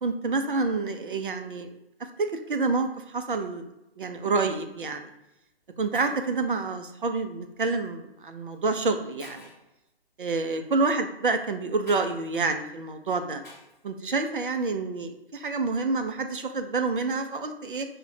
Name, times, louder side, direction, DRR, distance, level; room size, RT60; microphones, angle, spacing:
voice 1, 0.0-1.8 2.2-3.6 4.0-5.1 5.8-9.5 10.2-13.4 13.8-17.9, right 3 dB, 55° right, 6 dB, 0.5 m, -28 dB
Shatter, 5.6-5.7 5.9-6.4 7.7-7.9 8.5-8.6 9.2-9.7 11.9-12.1 13.4-13.8, left 2 dB, 15° left, 0.7 m, -48 dB
5.1 x 2.1 x 4.1 m, 0.92 s
figure-of-eight pair, 135°, 32 cm